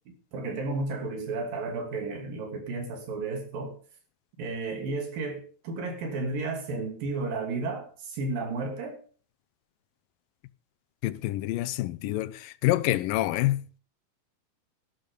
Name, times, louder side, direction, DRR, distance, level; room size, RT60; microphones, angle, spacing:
voice 1, 0.3-3.8 4.4-9.0, right 3 dB, 85° right, 4.5 m, -33 dB
voice 2, 11.0-13.7, left 16 dB, 90° left, 2.5 m, -27 dB
12.0 x 12.0 x 5.3 m
omnidirectional pair, 3.9 m